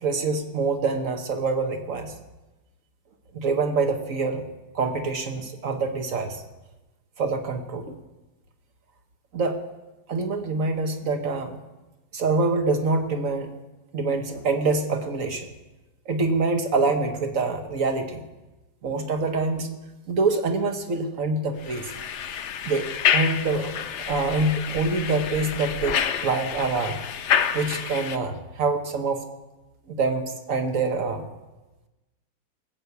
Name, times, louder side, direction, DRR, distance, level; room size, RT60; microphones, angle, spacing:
voice 1, 0.0-2.1 3.3-4.4 4.7-6.4 7.2-8.0 9.3-9.6 10.1-11.5 12.1-13.5 13.9-15.5 16.1-18.2 18.8-19.7 20.1-21.9 22.6-23.8 24.1-27.0 27.5-29.2 29.9-31.3, right 3 dB, 50° right, 6 dB, 1.5 m, -25 dB
sound 1, 21.6-28.2, left 8 dB, 70° left, 0.7 m, -28 dB
19.5 x 7.0 x 8.2 m, 1.1 s
omnidirectional pair, 2.0 m